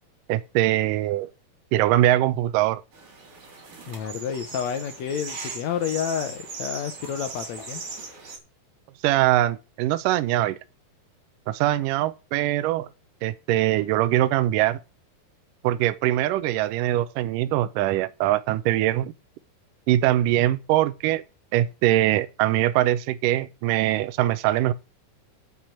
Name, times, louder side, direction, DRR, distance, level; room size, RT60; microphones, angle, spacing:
voice 1, 0.3-1.3 1.7-2.8 9.0-10.6 11.5-12.9 13.2-14.8 15.6-19.1 19.9-21.2 21.5-24.7, right 14 dB, 75° right, 2.2 m, -22 dB
sound 1, 2.9-8.4, right 4 dB, 60° right, 4.4 m, -39 dB
voice 2, 3.9-7.8, left 8 dB, 70° left, 1.7 m, -30 dB
8.6 x 6.1 x 7.7 m
omnidirectional pair, 4.1 m